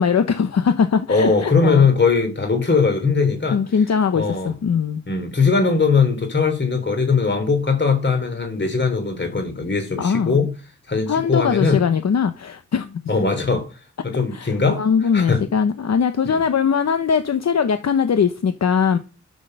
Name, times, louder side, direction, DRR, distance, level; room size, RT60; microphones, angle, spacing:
voice 1, 0.0-1.9 3.5-5.0 10.0-10.5 11.1-13.0 14.3-19.0, left 6 dB, 65° left, 1.0 m, -20 dB
voice 2, 1.1-3.6 4.1-4.5 5.1-10.5 10.9-11.8 13.1-13.7 14.0-14.8 15.1-15.4 16.3-16.4, left 4 dB, 40° left, 3.5 m, -20 dB
11.5 x 6.5 x 6.6 m
wide cardioid pair, 110°, 29 cm